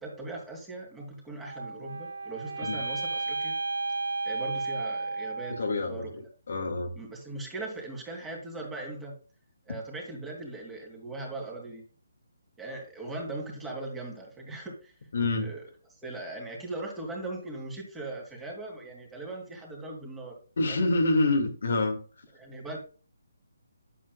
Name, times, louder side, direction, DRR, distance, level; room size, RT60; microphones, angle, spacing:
voice 1, 0.0-3.6 4.2-6.1 7.0-9.1 9.6-11.8 12.6-14.9 15.4-15.6 16.0-20.4 20.7-20.8 22.3-22.8, right 2 dB, 10° right, -1 dB, 3.2 m, -39 dB
sound 1, 1.4-5.7, right 3 dB, 65° right, 1.2 m, -33 dB
voice 2, 5.6-6.1 6.5-7.0 15.1-15.5 20.6-22.0, left 2 dB, 60° left, 4 dB, 2.2 m, -26 dB
10.0 x 8.6 x 2.4 m, 0.36 s
figure-of-eight pair, 145°, 0 cm